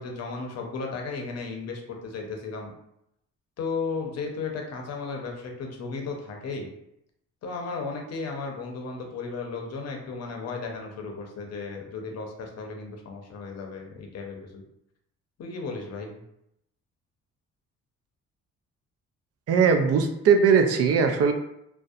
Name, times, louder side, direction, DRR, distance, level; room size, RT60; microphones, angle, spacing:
voice 1, 0.0-2.7 3.6-6.7 7.4-14.6 15.4-16.2, left 4 dB, 55° left, 2 dB, 0.6 m, -35 dB
voice 2, 19.5-21.3, right 6 dB, 55° right, 6 dB, 0.4 m, -20 dB
2.6 x 2.1 x 2.4 m, 0.80 s
cardioid pair, 90°, 30 cm